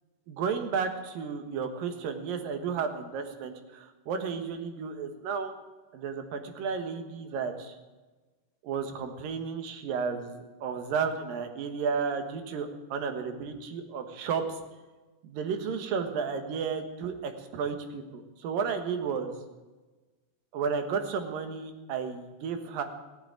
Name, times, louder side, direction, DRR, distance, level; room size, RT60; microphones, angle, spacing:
voice 1, 0.3-5.5 5.9-7.8 8.6-14.6 15.2-19.3 20.5-22.8, right 6 dB, 80° right, 7 dB, 3.1 m, -33 dB
18.0 x 8.0 x 9.1 m, 1.2 s
omnidirectional pair, 4.0 m